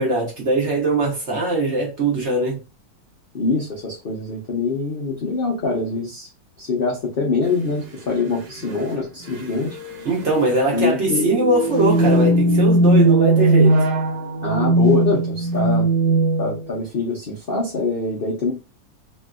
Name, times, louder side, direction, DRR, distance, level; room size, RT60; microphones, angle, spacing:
voice 1, 0.0-2.6 10.0-13.8, right 2 dB, 50° right, 0.9 m, -21 dB
voice 2, 3.3-6.3 6.6-9.7 10.7-11.4 14.4-15.9 16.4-18.5, left 3 dB, 85° left, 0.5 m, -24 dB
sound 1, 7.6-7.7 8.6-9.0 9.2-9.3 9.7-10.0 11.0-16.7, right 1 dB, 80° right, 1.3 m, -18 dB
3.1 x 2.7 x 2.3 m
omnidirectional pair, 2.1 m